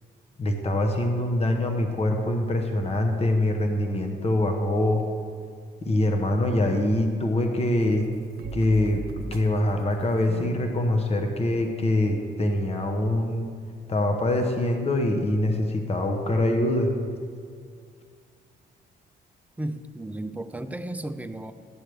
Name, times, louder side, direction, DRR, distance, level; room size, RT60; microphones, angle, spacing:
voice 1, 0.4-5.0 5.8-8.1 8.5-9.0 9.3-13.5 13.9-16.9, left 1 dB, 30° left, 4 dB, 1.0 m, -24 dB
sound 1, 7.7-14.5, right 3 dB, 55° right, 0.8 m, -42 dB
voice 2, 19.6-21.5, right 1 dB, 5° right, 9 dB, 0.5 m, -34 dB
12.5 x 7.5 x 3.3 m, 2.2 s
cardioid pair, 90°, 20 cm